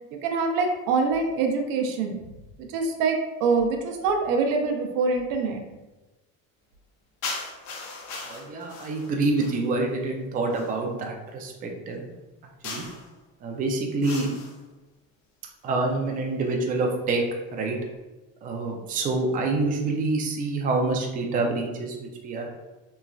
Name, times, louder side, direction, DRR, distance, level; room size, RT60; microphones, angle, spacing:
voice 1, 0.2-2.2 2.7-5.6, right 4 dB, 80° right, 3 dB, 0.6 m, -24 dB
sound 1, 7.2-9.7 10.5-10.8 12.6-13.1 14.0-14.6, left 3 dB, 80° left, 0.7 m, -37 dB
voice 2, 8.2-12.0 12.6-12.8 13.4-14.3 15.6-17.2 17.5-17.8 18.4-22.5, right 3 dB, 25° right, 1 dB, 0.4 m, -27 dB
3.1 x 2.3 x 2.3 m, 1.1 s
cardioid pair, 125°, 33 cm